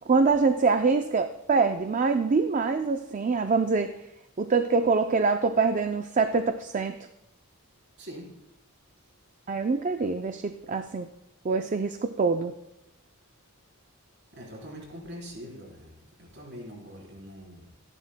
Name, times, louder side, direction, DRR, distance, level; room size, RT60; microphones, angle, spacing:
voice 1, 0.1-3.9 4.4-6.9 9.5-11.1 11.4-12.5, right 4 dB, 35° right, 7 dB, 0.4 m, -24 dB
voice 2, 8.0-8.3 14.4-17.7, equal, 55° right, -2 dB, 4.0 m, -43 dB
26.0 x 11.0 x 2.2 m, 0.89 s
head